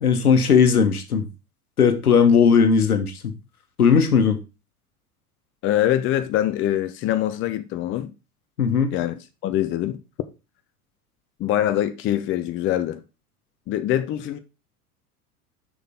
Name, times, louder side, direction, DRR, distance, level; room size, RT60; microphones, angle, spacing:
voice 1, 0.0-1.2 1.8-3.3 3.8-4.4 8.6-8.9, left 6 dB, 75° left, 1.2 m, -17 dB
voice 2, 5.6-8.1 8.9-10.0 11.4-13.0 13.7-14.4, left 12 dB, 25° left, 0.7 m, -24 dB
6.7 x 6.1 x 3.6 m
figure-of-eight pair, 80°, 44 cm